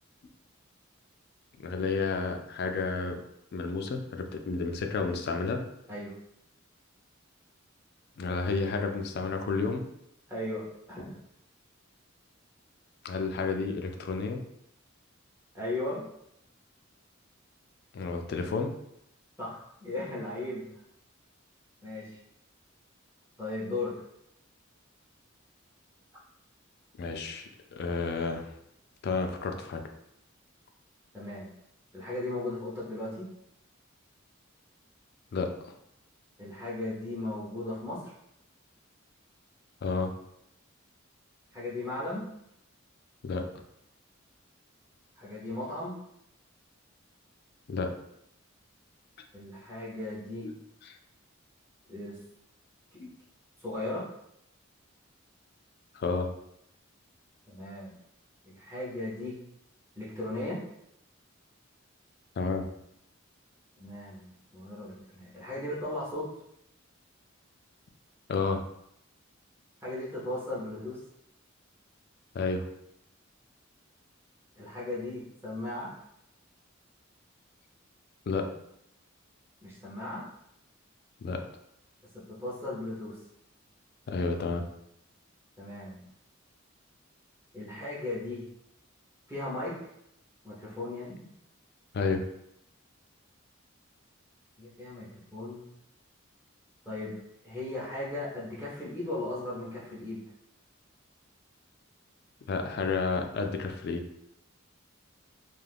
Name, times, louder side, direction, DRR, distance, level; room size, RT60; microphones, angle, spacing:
voice 1, 1.6-3.2 3.5-5.6 8.2-9.8 13.0-14.4 17.9-18.7 27.0-28.5 29.0-29.8 35.3-35.5 39.8-40.1 43.2-43.5 47.7-47.9 50.4-50.5 53.0-53.1 55.9-56.3 62.4-62.7 68.3-68.6 72.3-72.7 78.3-78.5 81.2-81.4 84.1-84.6 91.9-92.2 102.4-104.0, left 4 dB, 50° left, 5 dB, 0.3 m, -31 dB
voice 2, 10.3-11.2 15.5-16.0 19.4-20.7 21.8-22.2 23.4-23.9 31.1-31.5 31.9-33.3 36.4-38.1 41.5-42.3 45.2-46.0 49.3-50.5 51.9-52.2 53.6-54.1 57.5-57.9 58.4-59.4 59.9-60.6 63.8-66.3 69.8-71.0 74.6-75.9 79.6-80.2 82.1-83.2 85.6-86.0 87.5-88.4 89.3-89.8 90.4-91.2 94.6-95.7 96.9-97.2 97.4-100.2, left 2 dB, 10° right, -8 dB, 0.7 m, -36 dB
2.4 x 2.4 x 3.3 m, 0.78 s
head